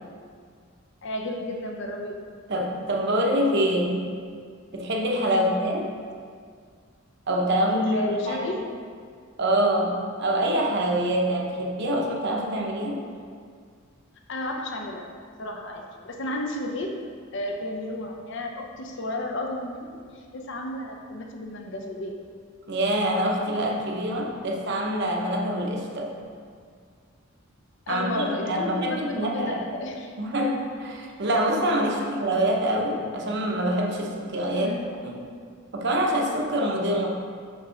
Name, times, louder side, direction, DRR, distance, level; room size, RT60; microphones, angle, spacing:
voice 1, 1.0-2.2 5.3-5.7 7.7-8.6 14.3-15.1 15.4-16.9 17.3-19.9 20.1-22.2 27.9-30.1 34.5-35.0, left 1 dB, 60° left, 1 dB, 0.7 m, -32 dB
voice 2, 2.5-4.0 4.7-5.9 7.3-8.5 9.4-13.0 22.7-26.1 27.9-29.6 30.2-34.7 35.0-35.2 35.7-37.1, right 1 dB, 55° right, -1 dB, 0.8 m, -25 dB
5.4 x 3.6 x 5.7 m, 2.1 s
head